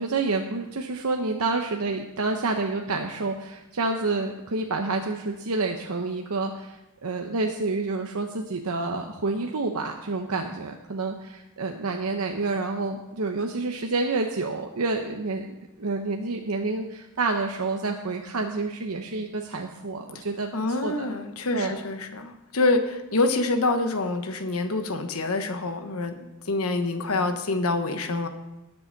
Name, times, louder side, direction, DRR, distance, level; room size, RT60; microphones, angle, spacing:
voice 1, 0.0-15.5 15.8-21.1 21.5-21.8, right 3 dB, 85° right, 3 dB, 0.9 m, -28 dB
voice 2, 20.5-26.1 26.5-28.3, left 2 dB, 75° left, 7 dB, 1.2 m, -26 dB
19.5 x 7.0 x 4.0 m, 0.95 s
head